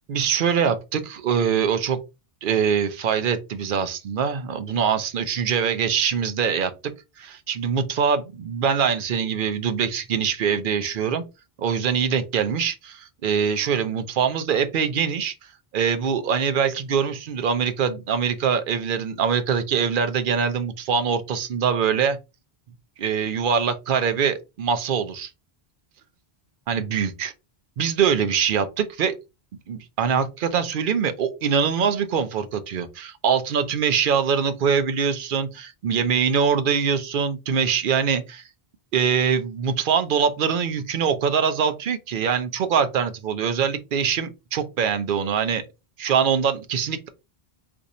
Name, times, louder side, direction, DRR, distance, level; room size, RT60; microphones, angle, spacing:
voice 1, 0.1-2.0 2.4-6.9 7.2-11.2 11.6-22.2 23.0-25.3 26.7-27.3 27.8-29.2 29.7-38.5 38.9-45.6 46.0-47.1, right 7 dB, 60° right, 0.7 m, -23 dB
2.6 x 2.5 x 4.0 m
omnidirectional pair, 1.0 m